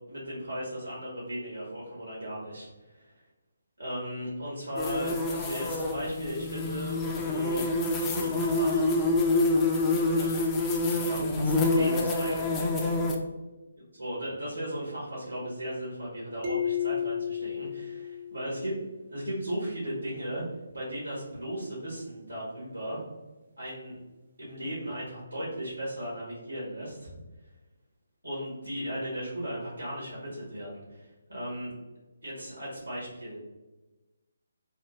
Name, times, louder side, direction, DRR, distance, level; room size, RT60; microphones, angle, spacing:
voice 1, 0.1-3.2 3.8-7.7 8.1-8.9 10.0-10.5 10.9-12.6 12.9-13.0 14.0-18.8 19.1-20.4 20.7-23.0 23.6-24.0 24.4-27.1 28.2-31.7 32.2-33.4, equal, 90° right, -6 dB, 1.3 m, -36 dB
sound 1, 4.8-13.2, left 2 dB, 15° left, 0.4 m, -27 dB
sound 2, 16.4-19.0, left 8 dB, 40° right, 0.5 m, -33 dB
3.3 x 2.3 x 2.9 m, 1.1 s
figure-of-eight pair, 145°, 0 cm